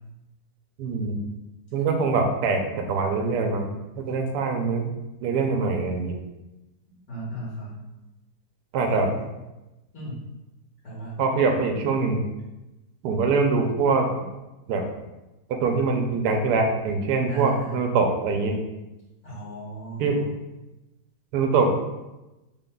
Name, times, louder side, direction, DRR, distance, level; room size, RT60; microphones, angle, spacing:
voice 1, 0.8-1.2 1.7-3.7 4.0-4.9 5.2-6.2 8.7-9.1 11.2-12.2 13.0-14.1 14.7-14.8 15.6-18.6 20.0-20.2 21.3-21.7, right 4 dB, 80° right, 3 dB, 1.1 m, -23 dB
voice 2, 7.1-7.8 8.8-9.2 9.9-10.3 10.8-11.2 17.3-17.8 19.2-20.3, right 1 dB, 80° left, -11 dB, 2.2 m, -34 dB
4.0 x 2.2 x 3.8 m, 1.0 s
omnidirectional pair, 1.8 m